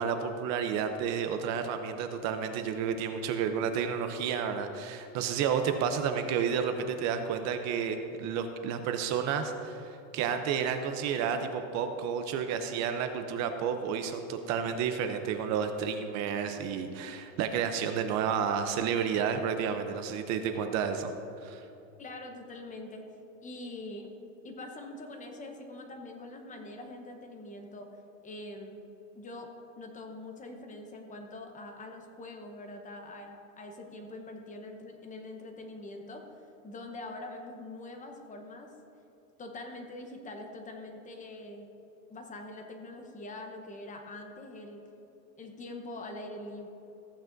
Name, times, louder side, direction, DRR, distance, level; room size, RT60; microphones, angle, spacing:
voice 1, 0.0-21.1 21.4-21.6, right 7 dB, 40° right, 7 dB, 0.7 m, -31 dB
voice 2, 22.0-23.0 23.4-24.1 24.4-28.0 28.2-28.8 29.1-36.4 36.6-38.7 39.4-41.7 42.1-44.8 45.4-46.7, left 2 dB, 20° left, 3 dB, 0.9 m, -44 dB
15.0 x 8.7 x 2.6 m, 2.9 s
supercardioid pair, 140°, 41 cm